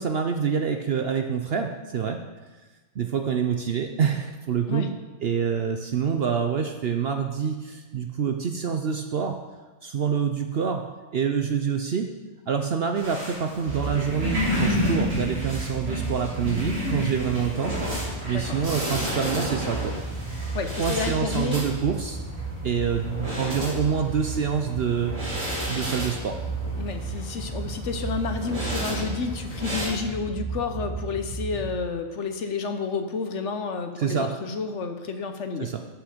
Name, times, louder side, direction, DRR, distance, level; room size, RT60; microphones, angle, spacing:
voice 1, 0.0-2.2 3.0-4.9 5.2-9.4 9.8-10.9 11.1-12.1 12.5-17.8 18.3-19.9 20.8-22.2 22.6-25.1 25.7-26.4 34.0-34.3 35.6-35.8, right 7 dB, 55° right, 5 dB, 0.7 m, -26 dB
sound 1, 13.0-29.9, left 1 dB, 85° right, 4.2 m, -32 dB
sound 2, 13.7-31.7, right 3 dB, 5° right, 0.7 m, -34 dB
voice 2, 20.5-21.6 26.8-35.7, left 4 dB, 60° left, 7 dB, 1.0 m, -30 dB
13.0 x 6.1 x 5.1 m, 1.3 s
omnidirectional pair, 1.5 m